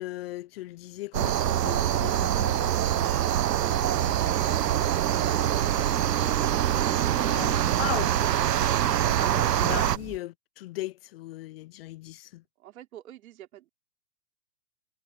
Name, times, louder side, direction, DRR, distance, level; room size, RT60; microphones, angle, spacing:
voice 1, 0.0-2.8 7.3-8.4 8.9-12.4, left 17 dB, 40° left, 0.8 m, -38 dB
sound 1, 1.1-10.0, right 11 dB, 80° right, 1.1 m, -24 dB
sound 2, 2.1-10.2, right 9 dB, 15° right, 2.1 m, -42 dB
voice 2, 12.6-13.7, right 12 dB, 60° right, 3.7 m, -49 dB
hypercardioid pair, 135°, 48 cm